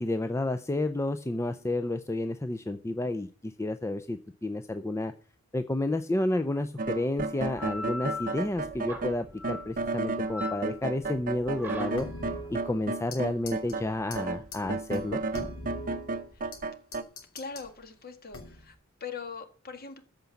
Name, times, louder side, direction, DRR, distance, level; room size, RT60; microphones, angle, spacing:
voice 1, 0.0-5.1 5.5-12.1 12.5-15.2, left 1 dB, 15° left, 9 dB, 0.4 m, -31 dB
sound 1, 6.8-13.9 14.1-17.0, right 3 dB, 40° right, 0.7 m, -33 dB
sound 2, 7.4-16.6, left 2 dB, 10° right, 2.2 m, -42 dB
sound 3, 12.0-13.2 13.5-13.7 14.1-14.2 14.5-14.6 14.9-16.6 16.9-17.7 18.3-18.7, left 1 dB, 70° left, 2.8 m, -41 dB
voice 2, 17.3-18.8 19.0-20.0, left 5 dB, 45° left, 7 dB, 1.7 m, -41 dB
14.0 x 5.2 x 7.1 m, 0.39 s
head